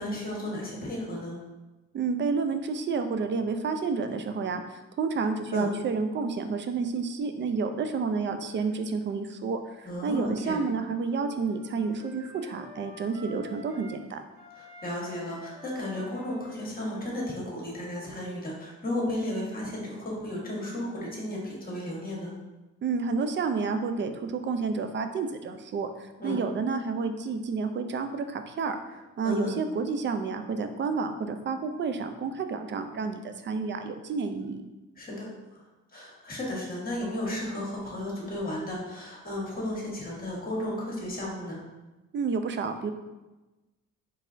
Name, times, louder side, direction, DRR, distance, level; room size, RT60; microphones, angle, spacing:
voice 1, 0.0-1.4 5.5-5.7 9.8-10.6 14.5-22.3 26.2-26.4 29.2-29.6 35.0-35.6 35.9-41.6, left 1 dB, 30° left, -3 dB, 1.5 m, -34 dB
voice 2, 1.9-14.2 22.8-34.6 42.1-42.9, right 4 dB, 40° right, 8 dB, 0.4 m, -30 dB
Wind instrument woodwind instrument, 9.6-14.0 14.3-18.9, right 1 dB, 70° right, 1.1 m, -49 dB
4.2 x 3.4 x 2.6 m, 1.1 s
cardioid pair, 90°, 30 cm